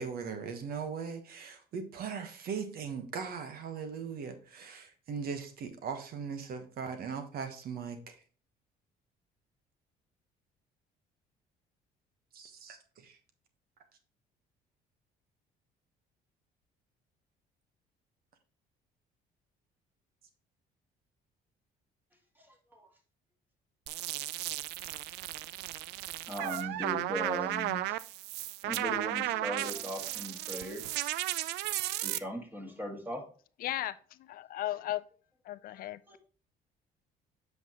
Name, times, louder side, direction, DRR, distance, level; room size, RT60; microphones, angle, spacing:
voice 1, 0.0-8.2 12.3-13.2, right 6 dB, 65° right, 1.3 m, -39 dB
sound 1, 23.9-32.2, right 15 dB, 85° right, 0.4 m, -35 dB
voice 2, 26.3-28.0 28.6-30.8 32.0-33.2 36.1-36.2, left 1 dB, 10° right, 2.1 m, -39 dB
voice 3, 33.6-34.0 34.3-35.0 35.5-36.2, left 14 dB, 60° left, 0.4 m, -35 dB
8.1 x 5.8 x 3.0 m
cardioid pair, 110°, 17 cm